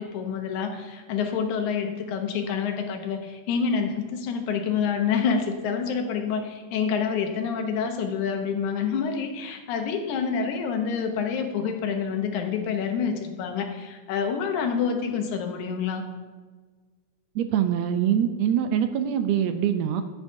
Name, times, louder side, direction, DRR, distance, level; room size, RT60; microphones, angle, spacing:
voice 1, 0.0-16.0, left 6 dB, 90° left, 4 dB, 2.4 m, -27 dB
voice 2, 17.3-20.0, right 9 dB, 80° right, 8 dB, 1.7 m, -24 dB
14.0 x 8.1 x 2.7 m, 1.4 s
omnidirectional pair, 3.3 m